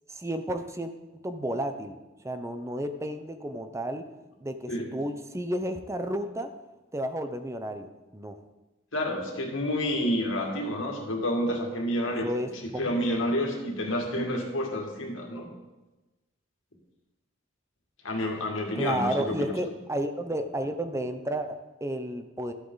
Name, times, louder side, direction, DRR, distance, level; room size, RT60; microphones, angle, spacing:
voice 1, 0.1-0.9 1.2-2.0 2.2-4.0 4.4-6.5 6.9-8.4 12.2-12.5 18.7-22.5, right 1 dB, 15° right, 8 dB, 0.6 m, -32 dB
voice 2, 8.9-12.3 12.6-15.5 18.0-19.5, equal, 85° left, 1 dB, 2.1 m, -29 dB
13.0 x 8.2 x 4.0 m, 1.1 s
head